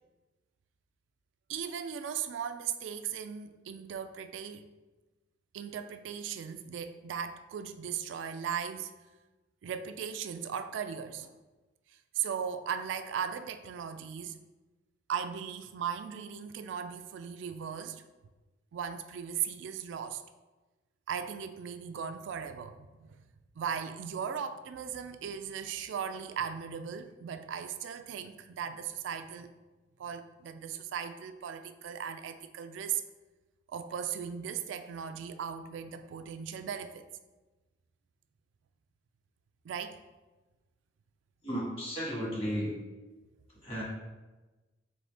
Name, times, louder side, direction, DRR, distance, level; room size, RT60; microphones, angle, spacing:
voice 1, 1.5-4.7 5.5-8.9 9.6-11.3 12.1-14.4 15.1-18.0 18.7-20.2 21.1-23.2 23.6-29.5 30.0-33.0 33.7-37.1 39.6-40.0, right 7 dB, 75° right, 9 dB, 0.3 m, -37 dB
voice 2, 41.4-42.8 43.6-43.8, equal, 30° left, -5 dB, 1.4 m, -34 dB
3.9 x 3.6 x 3.4 m, 1.2 s
head